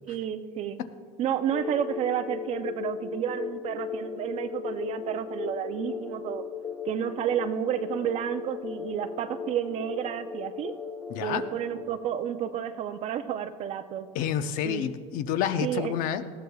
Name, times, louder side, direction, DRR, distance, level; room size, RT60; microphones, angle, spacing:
voice 1, 0.1-0.8 1.2-6.4 6.9-10.7 11.2-14.1 14.6-14.9 15.6-15.9, right 9 dB, 40° right, 9 dB, 0.6 m, -31 dB
sound 1, 1.5-11.9, left 6 dB, 25° left, 2.0 m, -37 dB
voice 2, 11.1-11.4 14.1-16.2, left 9 dB, 60° left, 10 dB, 0.7 m, -29 dB
18.5 x 14.5 x 2.3 m, 2.1 s
supercardioid pair, 135°, 16 cm